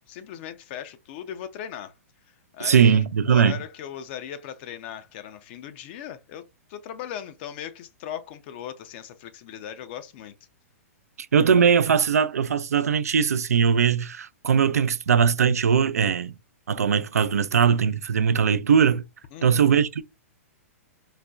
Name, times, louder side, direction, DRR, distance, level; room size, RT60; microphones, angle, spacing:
voice 1, 0.1-1.9 2.3-10.3 19.3-19.7, left 9 dB, 45° left, 0.5 m, -38 dB
voice 2, 2.6-3.5 11.3-16.4 16.7-19.0 19.4-20.0, right 7 dB, 85° right, 0.3 m, -20 dB
4.0 x 2.2 x 2.2 m
hypercardioid pair, 125°, 8 cm